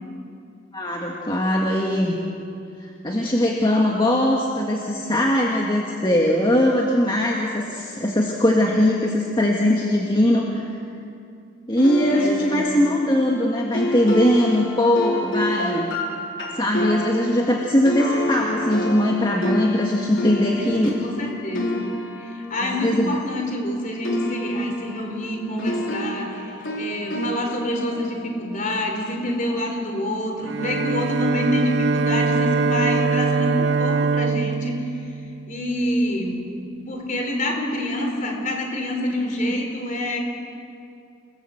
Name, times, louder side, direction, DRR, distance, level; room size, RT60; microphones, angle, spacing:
voice 1, 0.7-2.2 2.8-10.7 11.7-15.9 16.5-20.9 22.6-23.2, left 1 dB, 20° left, -1 dB, 1.8 m, -20 dB
sound 1, 11.8-23.7 24.0-29.3, left 1 dB, 65° left, 3.6 m, -30 dB
voice 2, 12.0-12.7 20.6-21.9 22.2-35.0 35.5-36.4 36.7-40.2, left 1 dB, 40° left, 2 dB, 4.4 m, -27 dB
Bowed string instrument, 30.4-35.9, right 4 dB, 55° right, 0.6 m, -23 dB
29.0 x 19.5 x 8.0 m, 2.5 s
head